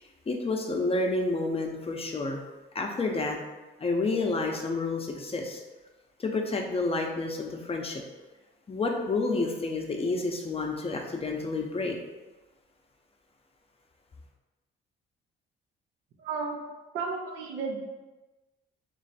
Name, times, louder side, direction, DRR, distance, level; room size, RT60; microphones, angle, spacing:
voice 1, 0.3-2.4 2.7-3.4 3.8-5.6 6.2-8.0 8.7-12.0, left 3 dB, 30° left, 2 dB, 0.7 m, -29 dB
voice 2, 16.2-16.6 16.9-17.8, right 4 dB, 85° right, 1 dB, 0.8 m, -33 dB
3.2 x 3.1 x 4.1 m, 1.2 s
cardioid pair, 90°, 20 cm